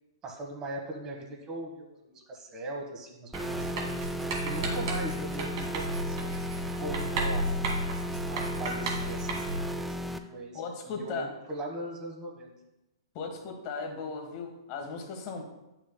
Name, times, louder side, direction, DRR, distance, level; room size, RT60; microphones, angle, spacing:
voice 1, 0.2-4.0 4.4-6.3 6.7-7.5 8.3-12.5, right 1 dB, 25° right, 1 dB, 1.3 m, -40 dB
sound 1, 3.3-10.2, equal, 5° right, 0.3 m, -35 dB
Writing, 3.3-9.7, right 1 dB, 55° right, 1.8 m, -33 dB
voice 2, 10.5-11.3 13.1-15.4, left 4 dB, 40° left, 3 dB, 1.4 m, -37 dB
9.6 x 6.0 x 2.2 m, 0.97 s
hypercardioid pair, 135°, 3 cm